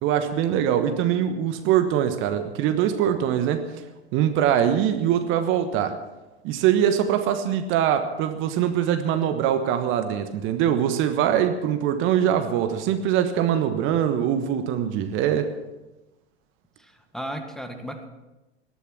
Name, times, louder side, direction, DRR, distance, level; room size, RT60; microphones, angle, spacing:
voice 1, 0.0-3.7 4.1-6.0 6.4-15.5, right 9 dB, 40° right, 9 dB, 1.3 m, -23 dB
voice 2, 16.8-18.1, equal, ahead, 5 dB, 1.5 m, -35 dB
18.5 x 12.0 x 6.0 m, 1.0 s
figure-of-eight pair, 85°, 33 cm